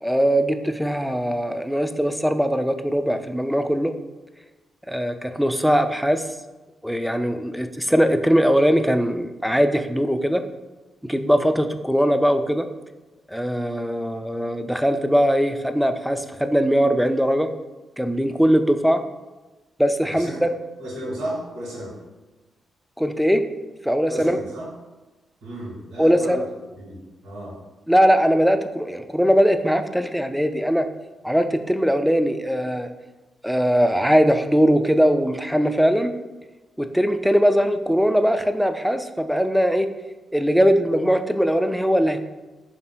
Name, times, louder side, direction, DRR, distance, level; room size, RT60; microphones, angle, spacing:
voice 1, 0.0-3.9 4.9-6.2 6.8-10.4 11.0-12.7 13.3-17.5 18.0-19.0 19.8-20.5 23.0-23.4 23.8-24.4 26.0-26.4 27.9-30.9 31.2-32.9 33.4-36.1 36.8-39.9 40.3-42.3, equal, ahead, 8 dB, 0.3 m, -20 dB
voice 2, 20.0-20.4 20.8-22.0 24.1-24.7 25.4-26.4 26.7-27.6, right 1 dB, 85° right, -6 dB, 1.3 m, -33 dB
3.2 x 2.6 x 4.2 m, 1.1 s
supercardioid pair, 55°, 0 cm